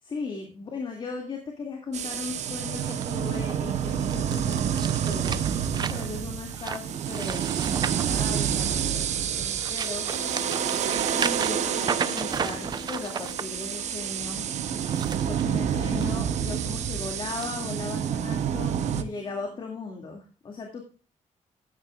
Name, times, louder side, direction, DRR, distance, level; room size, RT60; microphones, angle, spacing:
voice 1, 0.0-10.1 11.1-14.5 15.3-20.8, left 4 dB, 40° left, 1 dB, 2.2 m, -37 dB
sound 1, 1.9-19.0, right 8 dB, 65° right, 0.9 m, -28 dB
sound 2, 2.8-8.9 9.4-13.4 14.7-16.1 16.5-16.8 17.4-17.5, right 6 dB, 35° right, 0.6 m, -35 dB
sound 3, 10.1-19.7, left 7 dB, 65° left, 2.8 m, -46 dB
13.5 x 9.6 x 2.4 m, 0.36 s
cardioid pair, 145°, 13 cm